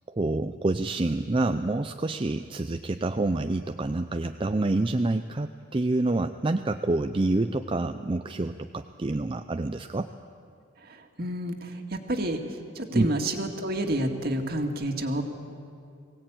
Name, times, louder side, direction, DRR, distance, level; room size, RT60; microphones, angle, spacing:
voice 1, 0.1-10.1 12.9-13.1, right 2 dB, 25° right, 7 dB, 0.5 m, -27 dB
voice 2, 10.8-15.2, right 1 dB, 50° right, 4 dB, 2.1 m, -30 dB
22.5 x 17.5 x 8.9 m, 2.4 s
head